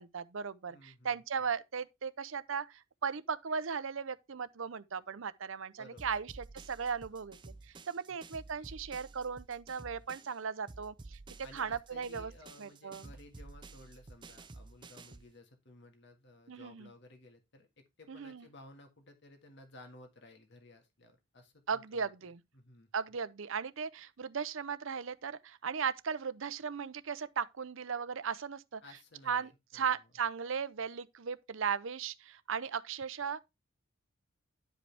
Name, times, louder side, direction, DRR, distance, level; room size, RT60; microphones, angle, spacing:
voice 1, 0.0-7.5 7.9-11.2 11.5-12.3 12.6-13.1 16.5-16.9 18.1-18.5 21.7-22.4 22.9-28.8 29.3-33.4, right 6 dB, 65° right, 0.6 m, -37 dB
voice 2, 0.7-1.2 5.8-6.2 11.4-22.9 28.8-30.0, left 2 dB, 55° left, 1.7 m, -56 dB
sound 1, 6.0-10.4 10.7-15.3, right 3 dB, 20° right, 0.5 m, -52 dB
11.0 x 5.1 x 3.4 m
head